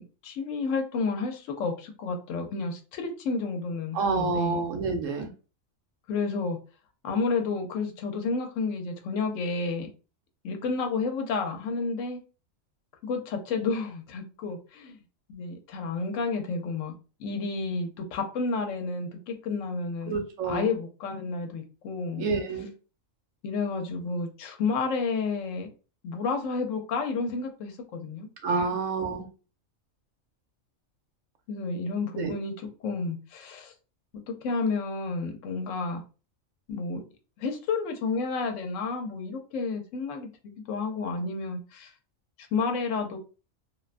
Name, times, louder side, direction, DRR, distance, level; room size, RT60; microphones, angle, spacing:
voice 1, 0.0-4.6 6.1-6.6 7.0-9.9 10.4-12.2 13.0-15.0 15.3-16.9 17.2-20.2 20.4-22.2 23.4-25.7 26.0-28.7 31.5-32.5 32.8-33.7 34.3-36.0 36.7-37.0 37.4-41.9 42.4-43.2, left 4 dB, 75° left, 0.9 m, -31 dB
voice 2, 3.9-5.3 20.1-20.7 22.2-22.7 28.4-29.2 32.2-32.3, right 4 dB, 80° right, 1.0 m, -28 dB
2.5 x 2.2 x 2.4 m
omnidirectional pair, 1.4 m